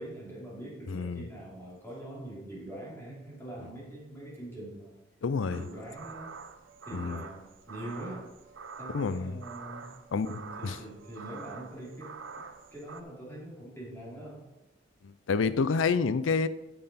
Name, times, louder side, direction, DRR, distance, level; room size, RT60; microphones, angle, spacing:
voice 1, 0.0-4.9 5.4-6.4 6.8-8.3 8.8-12.4 12.7-14.5, right 1 dB, 15° left, -6 dB, 2.8 m, -43 dB
voice 2, 0.9-1.3 5.2-5.6 6.9-7.2 8.9-9.3 10.1-10.3 10.6-10.8 15.0-16.5, left 5 dB, 90° left, 15 dB, 0.5 m, -28 dB
sound 1, 5.5-13.0, right 5 dB, 80° right, 0.7 m, -46 dB
8.9 x 7.8 x 4.2 m, 0.97 s
head